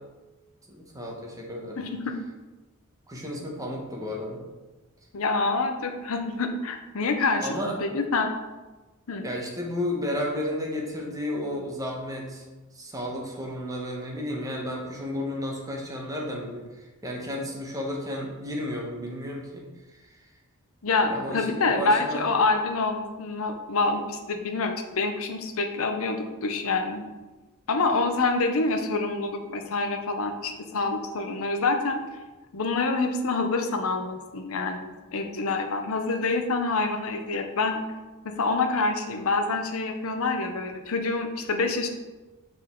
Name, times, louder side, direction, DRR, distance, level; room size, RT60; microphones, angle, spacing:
voice 1, 0.7-1.8 3.1-4.4 7.4-7.8 9.2-12.4 12.7-20.3 21.1-22.3, left 1 dB, 15° right, -1 dB, 1.0 m, -33 dB
voice 2, 5.1-8.3 9.1-9.2 20.8-27.0 27.7-32.0 32.5-37.8 38.2-41.9, left 3 dB, 70° left, 5 dB, 0.7 m, -26 dB
6.6 x 3.9 x 3.7 m, 1.2 s
head